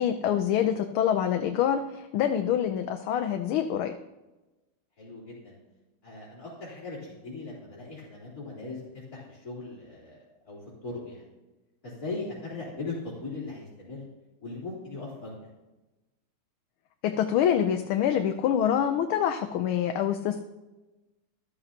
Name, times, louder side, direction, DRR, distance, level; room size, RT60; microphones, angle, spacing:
voice 1, 0.0-3.9 17.0-20.4, left 9 dB, 85° left, 6 dB, 1.5 m, -26 dB
voice 2, 5.0-5.6 6.0-10.2 10.5-11.2 11.8-14.1 14.4-15.3, left 3 dB, 45° left, -6 dB, 4.0 m, -39 dB
13.0 x 13.0 x 2.9 m, 1.1 s
omnidirectional pair, 2.3 m